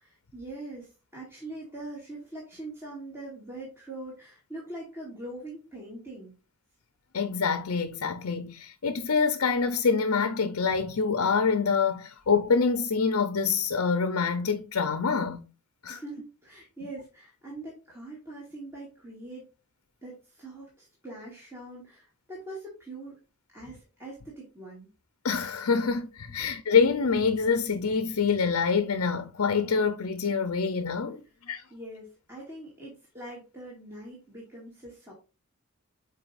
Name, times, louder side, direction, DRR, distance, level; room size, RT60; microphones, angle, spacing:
voice 1, 0.0-6.4 15.9-19.5 20.0-23.2 23.5-24.9 31.7-35.1, right 2 dB, 10° right, 2.2 m, -42 dB
voice 2, 7.1-15.4 15.8-16.0 25.2-31.6, left 5 dB, 80° left, 0.7 m, -26 dB
7.9 x 4.7 x 2.6 m
head